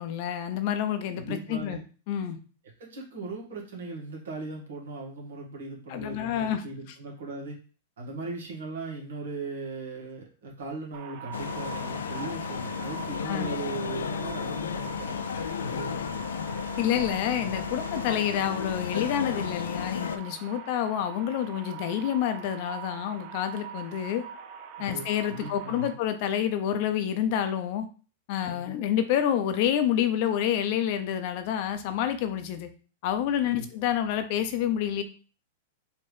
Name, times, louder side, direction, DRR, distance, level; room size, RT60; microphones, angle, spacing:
voice 1, 0.0-1.8 2.1-2.4 5.9-6.6 13.2-13.5 16.8-24.2 24.8-27.9 28.3-32.7 33.0-35.0, left 10 dB, 55° left, 9 dB, 0.6 m, -28 dB
voice 2, 1.1-1.8 2.8-7.6 8.0-15.2 15.6-16.1 24.8-25.9 28.4-28.8 33.4-33.7, right 3 dB, 80° right, -2 dB, 1.8 m, -38 dB
sound 1, 10.9-25.9, right 9 dB, 50° right, 0.5 m, -43 dB
sound 2, 11.3-20.2, left 7 dB, 90° left, 0.3 m, -33 dB
4.5 x 3.0 x 3.3 m, 0.38 s
hypercardioid pair, 130°, 0 cm